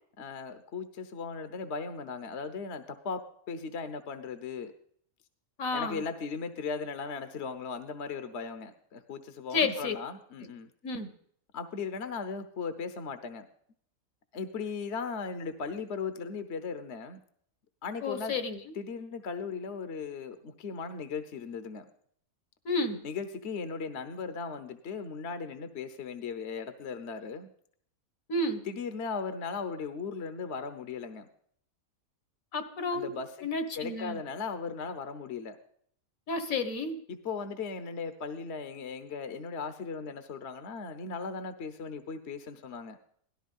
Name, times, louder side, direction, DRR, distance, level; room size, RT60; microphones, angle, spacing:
voice 1, 0.2-4.7 5.7-10.7 11.5-13.5 14.3-17.2 17.8-18.3 18.7-21.8 23.0-27.5 28.7-31.3 32.9-33.5 33.7-35.6 37.1-43.0, left 5 dB, 55° left, 10 dB, 1.2 m, -37 dB
voice 2, 5.6-6.0 9.5-10.0 10.8-11.1 18.0-18.6 22.7-23.0 28.3-28.7 32.5-33.1 33.4-34.2 36.3-37.0, left 3 dB, 70° left, 9 dB, 1.8 m, -31 dB
17.5 x 13.0 x 5.4 m, 0.64 s
omnidirectional pair, 1.5 m